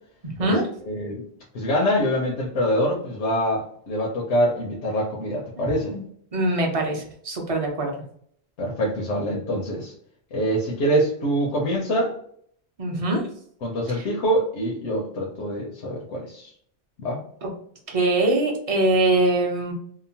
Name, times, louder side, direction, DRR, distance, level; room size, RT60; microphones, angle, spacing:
voice 1, 0.9-1.2 1.5-6.0 8.6-9.9 10.3-12.1 13.6-16.5 17.0-17.2, equal, 85° left, -3 dB, 1.0 m, -25 dB
voice 2, 6.3-7.9 12.8-13.2 13.9-14.0 17.4-17.5 17.9-19.7, right 2 dB, 40° right, 1 dB, 0.6 m, -22 dB
2.8 x 2.0 x 2.7 m, 0.63 s
omnidirectional pair, 1.1 m